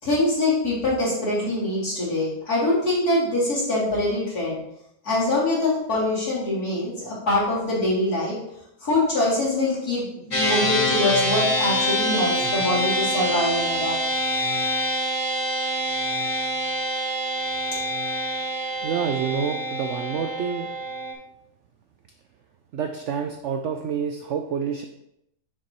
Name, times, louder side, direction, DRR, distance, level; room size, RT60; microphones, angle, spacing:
voice 1, 0.0-4.6 5.0-8.4 8.8-14.0, left 2 dB, 65° left, -8 dB, 3.3 m, -24 dB
sound 1, 10.3-21.1, equal, 25° left, 0.9 m, -26 dB
voice 2, 18.8-20.7 22.7-24.8, right 7 dB, 70° right, 5 dB, 0.7 m, -28 dB
7.0 x 6.6 x 3.0 m, 0.81 s
omnidirectional pair, 1.7 m